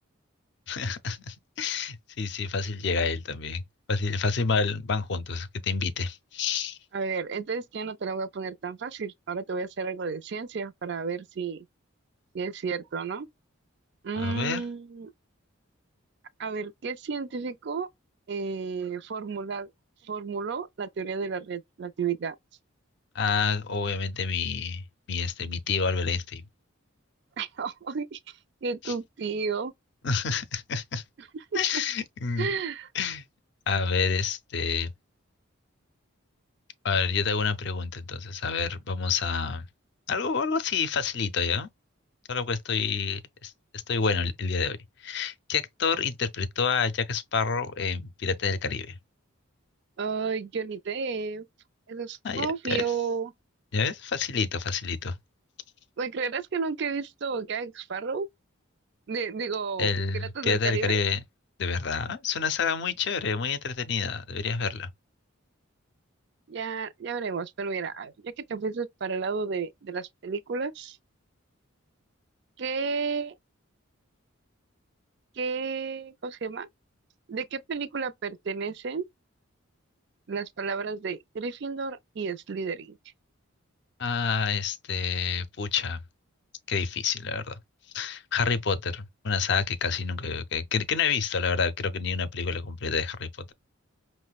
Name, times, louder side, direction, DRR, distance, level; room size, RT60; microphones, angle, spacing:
voice 1, 0.7-3.6 3.9-6.8 14.2-14.6 23.1-24.8 25.1-26.4 28.8-28.9 30.0-31.0 31.5-32.6 32.9-33.2 33.7-34.9 36.8-39.6 40.1-41.7 42.3-44.8 45.0-49.0 52.2-52.8 53.7-55.2 59.8-61.2 61.6-64.9 84.0-86.0 86.7-87.6 87.9-93.5, left 5 dB, 55° left, 0.5 m, -28 dB
voice 2, 6.9-11.7 12.3-13.3 14.0-15.1 16.4-17.9 18.3-19.7 20.0-22.4 27.4-28.2 28.6-29.7 32.4-32.9 50.0-51.5 51.9-53.3 56.0-58.3 59.1-61.0 66.5-71.0 72.6-73.3 75.4-76.7 77.3-79.1 80.3-83.0, right 5 dB, 55° right, 0.4 m, -32 dB
5.6 x 2.1 x 2.3 m
head